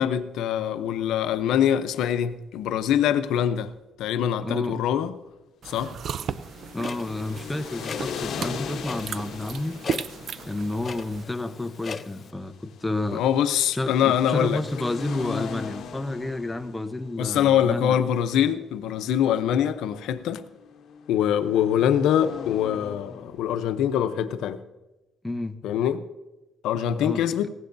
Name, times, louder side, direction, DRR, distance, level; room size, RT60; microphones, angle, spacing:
voice 1, 0.0-3.7 4.0-5.1 5.7-5.9 13.1-14.6 17.2-20.5 21.1-24.6 25.6-26.0 26.6-27.5, left 9 dB, 85° left, 0.7 m, -24 dB
voice 2, 4.4-4.8 6.7-9.8 10.5-13.2 13.7-18.0 25.2-25.6 27.0-27.3, left 2 dB, 10° left, 0.9 m, -30 dB
sound 1, 5.6-11.2, right 7 dB, 60° right, 0.5 m, -35 dB
sound 2, 6.0-23.9, left 6 dB, 70° left, 1.0 m, -40 dB
Clock, 6.8-12.3, left 5 dB, 45° left, 0.6 m, -40 dB
18.5 x 16.0 x 2.7 m
cardioid pair, 90°, 0 cm